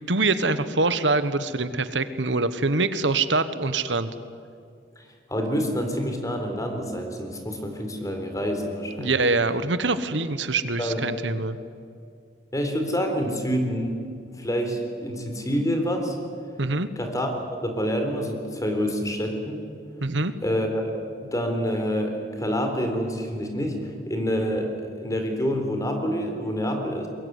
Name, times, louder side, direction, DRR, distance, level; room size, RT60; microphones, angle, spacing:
voice 1, 0.1-4.1 9.0-11.6 16.6-16.9 20.0-20.3, right 3 dB, 85° right, 12 dB, 1.3 m, -24 dB
voice 2, 5.0-9.1 10.8-11.1 12.5-14.0 14.4-16.2 17.0-19.6 20.4-23.8 24.1-24.7 25.0-27.1, equal, 20° left, 5 dB, 4.0 m, -27 dB
22.5 x 22.5 x 9.6 m, 2.4 s
head